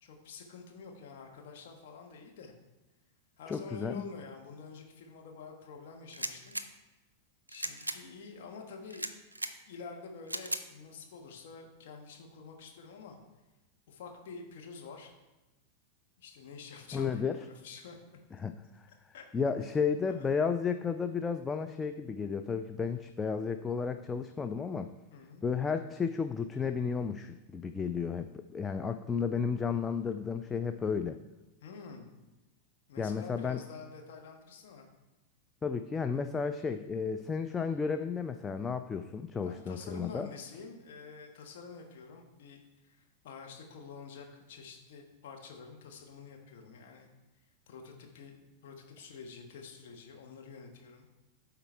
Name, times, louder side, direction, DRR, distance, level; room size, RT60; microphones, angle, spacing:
voice 1, 0.0-2.5 3.4-6.6 7.5-9.1 9.7-13.2 13.9-15.1 16.2-18.0 19.1-19.3 20.1-20.2 25.1-25.4 31.6-32.1 32.9-34.9 39.4-47.1 47.7-51.1, left 5 dB, 55° left, 2 dB, 1.2 m, -48 dB
voice 2, 3.5-4.0 16.9-17.4 18.4-18.8 19.3-24.9 25.4-31.2 33.0-33.6 35.6-40.3, left 5 dB, 15° left, 8 dB, 0.3 m, -33 dB
sound 1, 6.1-6.7 7.5-8.0 8.9-9.5 10.3-10.6, right 1 dB, 85° right, 0.4 m, -37 dB
8.9 x 3.9 x 4.4 m, 1.1 s
figure-of-eight pair, 90°, 0 cm